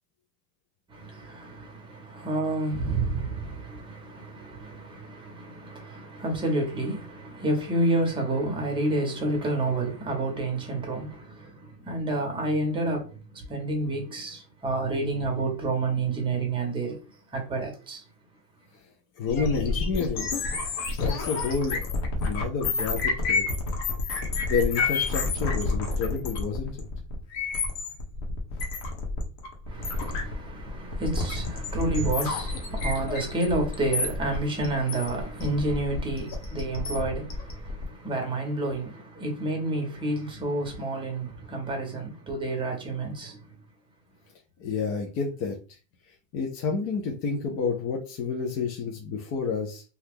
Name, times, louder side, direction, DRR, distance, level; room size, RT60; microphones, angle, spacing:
voice 1, 0.9-17.0 17.3-18.0 29.7-43.5, right 2 dB, 10° right, 0.9 m, -29 dB
voice 2, 19.2-20.3 21.0-21.9 22.2-23.5 24.4-26.7 44.6-45.6 46.3-49.8, left 5 dB, 30° left, 0.5 m, -29 dB
sound 1, 19.3-37.8, left 3 dB, 50° left, 1.0 m, -29 dB
2.9 x 2.3 x 3.5 m
supercardioid pair, 145°, 42 cm